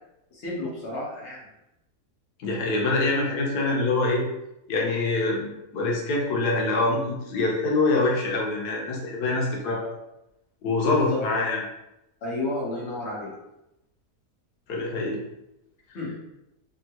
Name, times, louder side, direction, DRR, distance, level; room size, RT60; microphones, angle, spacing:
voice 1, 0.3-1.5 10.9-11.2 12.2-13.3 15.9-16.2, left 2 dB, 50° left, -5 dB, 1.2 m, -32 dB
voice 2, 2.4-4.2 4.7-9.8 10.6-11.6 14.7-15.2, left 2 dB, 90° left, -2 dB, 1.3 m, -25 dB
3.5 x 2.2 x 2.8 m, 0.89 s
omnidirectional pair, 1.7 m